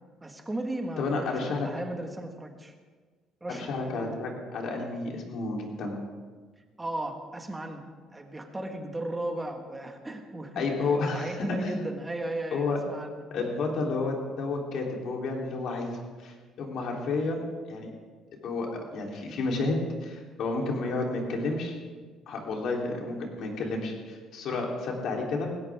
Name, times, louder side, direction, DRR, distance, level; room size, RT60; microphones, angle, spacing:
voice 1, 0.2-2.8 3.4-4.2 6.8-7.8 8.1-13.2 17.1-17.3, right 1 dB, 10° right, 3 dB, 1.8 m, -36 dB
voice 2, 1.0-1.7 3.5-6.0 10.6-11.3 11.6-11.8 12.5-12.8 13.3-17.9 18.4-21.8 22.3-25.5, left 3 dB, 60° left, 0 dB, 3.6 m, -31 dB
20.0 x 16.5 x 3.7 m, 1.4 s
cardioid pair, 145°, 0 cm